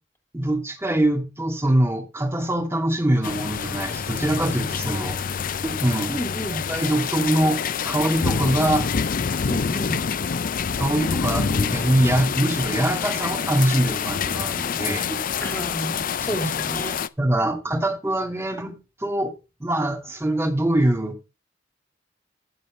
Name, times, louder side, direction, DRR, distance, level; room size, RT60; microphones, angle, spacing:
voice 1, 0.3-5.2 5.6-6.2 6.5-7.6 7.8-8.9 10.8-15.2 17.2-19.3 19.6-21.2, right 1 dB, 15° right, 2.4 m, -23 dB
sound 1, 3.2-17.1, left 6 dB, 50° left, 0.5 m, -26 dB
voice 2, 6.1-6.6 9.5-10.0 15.4-17.0 17.4-17.8, right 1 dB, 10° left, 2.8 m, -31 dB
9.5 x 7.4 x 5.1 m
head